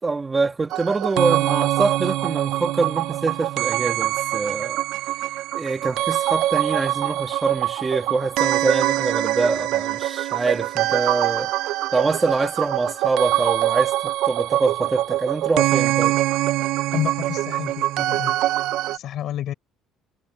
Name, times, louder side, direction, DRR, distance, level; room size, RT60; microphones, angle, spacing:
voice 1, 0.0-4.8 5.5-11.5 11.9-16.2, right 3 dB, 15° right, 2.1 m, -24 dB
sound 1, 0.7-19.0, right 15 dB, 70° right, 0.4 m, -24 dB
voice 2, 16.9-18.4 18.9-19.5, left 11 dB, 50° left, 4.3 m, -29 dB
cardioid pair, 155°, 0 cm